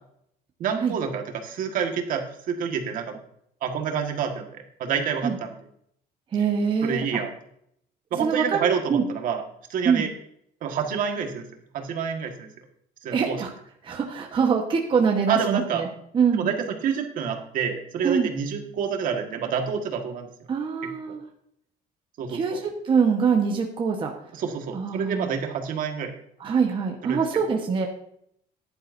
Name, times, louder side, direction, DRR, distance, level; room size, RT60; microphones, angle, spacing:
voice 1, 0.6-3.2 3.6-5.6 6.8-7.3 8.1-9.4 9.7-10.1 10.6-11.4 11.7-12.5 13.0-13.4 15.3-15.8 16.4-20.3 22.2-22.6 24.3-26.1 27.0-27.5, right 7 dB, 55° right, 4 dB, 1.7 m, -28 dB
voice 2, 6.3-7.0 8.1-8.6 8.9-9.0 9.8-10.1 13.1-13.5 13.8-15.9 16.1-16.5 18.0-18.3 20.5-21.2 22.3-24.1 24.7-25.3 26.4-27.9, right 6 dB, 30° right, 1 dB, 1.2 m, -24 dB
15.0 x 11.0 x 2.7 m, 0.71 s
cardioid pair, 150°, 16 cm